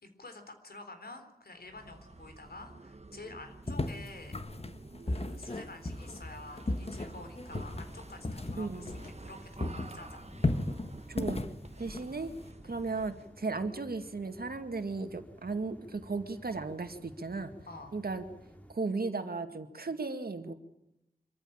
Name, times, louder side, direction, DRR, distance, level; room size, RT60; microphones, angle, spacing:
voice 1, 0.0-4.4 5.1-10.3 12.6-12.8 17.7-17.9, left 2 dB, 85° left, 7 dB, 3.9 m, -49 dB
sound 1, 1.6-13.4, right 2 dB, 45° right, 1.3 m, -51 dB
sound 2, 3.7-9.3 9.6-12.5, left 2 dB, 40° left, 1.5 m, -35 dB
sound 3, 6.1-18.7, equal, 10° left, 2.7 m, -55 dB
voice 2, 8.6-8.9 11.1-11.4 11.8-12.3 12.6-17.5 17.9-18.2 18.7-20.5, right 3 dB, 90° right, 7 dB, 2.1 m, -35 dB
25.5 x 15.0 x 8.9 m, 0.87 s
wide cardioid pair, 70°, 15 cm